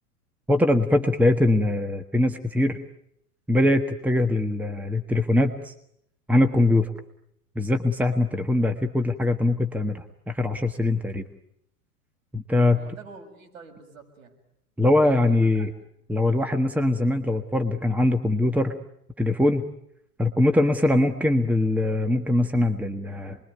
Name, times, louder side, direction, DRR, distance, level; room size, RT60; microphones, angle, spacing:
voice 1, 0.5-2.8 3.5-5.7 6.3-6.9 7.5-11.2 12.3-12.8 14.8-15.7 16.1-18.7 19.2-19.6 20.2-23.4, left 2 dB, 5° right, 8 dB, 1.5 m, -22 dB
voice 2, 12.6-14.4 15.2-15.7 21.0-21.1, right 4 dB, 60° right, 4 dB, 7.1 m, -46 dB
29.0 x 22.0 x 9.4 m, 0.75 s
figure-of-eight pair, 95°, 44 cm